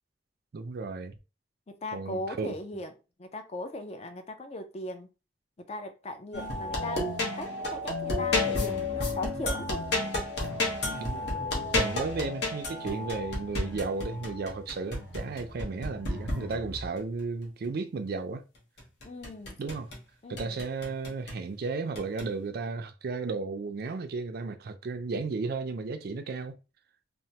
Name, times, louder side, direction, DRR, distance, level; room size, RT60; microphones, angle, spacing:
voice 1, 0.5-1.1 1.9-2.5 11.0-11.3 11.7-18.4 19.6-19.9 20.3-26.6, right 4 dB, 60° right, 0.4 m, -34 dB
voice 2, 1.7-2.9 3.2-5.1 5.7-9.9 19.0-19.6 20.2-20.6, left 1 dB, 35° left, 0.4 m, -38 dB
sound 1, 6.3-17.0 18.8-20.0 20.4-21.4 22.0-22.3, left 2 dB, 70° left, 1.0 m, -32 dB
3.0 x 2.1 x 2.7 m
head